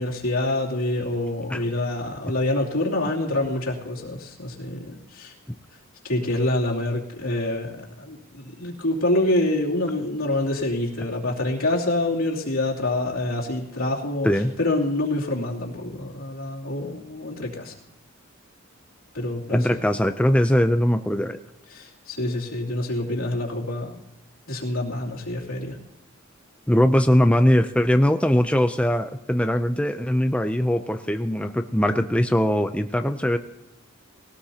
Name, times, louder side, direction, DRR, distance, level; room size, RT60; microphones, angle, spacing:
voice 1, 0.0-5.3 6.0-17.7 19.1-19.8 21.7-24.0 24.5-25.8, left 1 dB, 80° left, -3 dB, 3.0 m, -26 dB
voice 2, 19.5-21.4 26.7-33.4, equal, 5° left, 7 dB, 0.4 m, -21 dB
20.0 x 18.0 x 2.9 m, 0.87 s
head